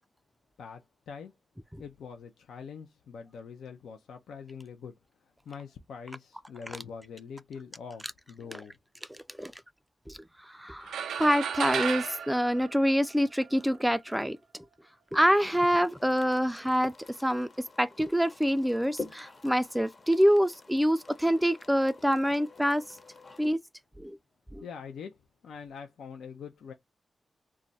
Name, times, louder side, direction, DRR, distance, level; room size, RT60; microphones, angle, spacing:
voice 1, 0.6-1.3 1.8-4.9 5.2-8.8 24.6-25.2 25.4-26.7, left 6 dB, 85° left, 0.4 m, -44 dB
voice 2, 10.5-14.4 15.1-16.9 17.2-17.5 17.8-22.8 23.4-23.6 24.0-24.2 24.5-24.6, equal, 5° right, 0.3 m, -26 dB
sound 1, 10.9-13.5, right 8 dB, 90° right, 0.4 m, -33 dB
sound 2, 15.4-23.5, left 3 dB, 50° left, 0.8 m, -48 dB
2.3 x 2.1 x 3.8 m
supercardioid pair, 40°, 0 cm